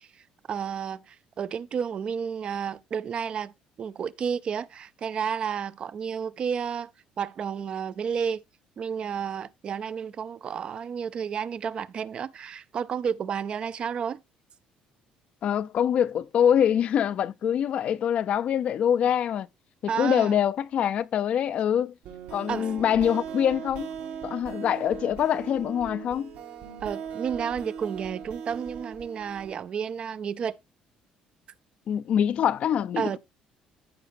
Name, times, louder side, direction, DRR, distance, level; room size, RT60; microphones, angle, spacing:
voice 1, 0.0-3.5 3.8-6.9 7.2-8.4 8.8-14.2 19.9-20.4 22.5-22.7 26.8-30.6 33.0-33.2, right 7 dB, 40° right, 0.5 m, -31 dB
voice 2, 15.4-19.5 19.8-21.9 22.3-23.9 24.2-26.3 31.9-33.2, left 9 dB, 50° left, 0.5 m, -24 dB
sound 1, 22.0-29.6, right 7 dB, 80° right, 2.6 m, -39 dB
14.5 x 5.0 x 2.6 m
cardioid pair, 130°, 3 cm